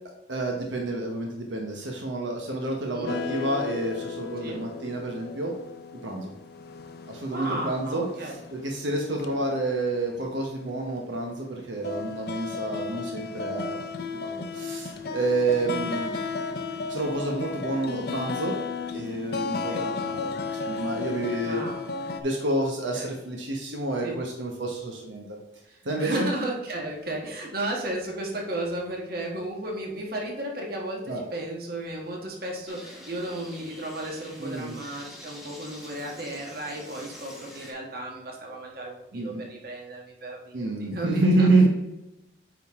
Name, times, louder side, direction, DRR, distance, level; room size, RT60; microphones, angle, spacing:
voice 1, 0.3-5.5 5.9-6.3 7.1-8.0 8.5-13.8 14.2-16.2 16.9-18.6 18.9-21.6 22.2-25.4 25.8-26.3 31.1-31.2 34.4-34.7 39.1-39.4 40.5-41.7, right 2 dB, 90° right, 1 dB, 1.1 m, -28 dB
sound 1, 3.1-9.4 9.9-10.0 11.0-11.1 11.6-22.2, left 4 dB, 55° left, 0.6 m, -34 dB
voice 2, 7.3-8.4 15.7-15.9 19.7-19.8 21.4-21.8 22.9-23.0 24.0-24.2 25.7-41.5, right 1 dB, 55° right, -1 dB, 1.5 m, -34 dB
sound 2, 32.7-37.7, equal, ahead, 1.3 m, -46 dB
8.9 x 3.9 x 3.7 m, 0.92 s
head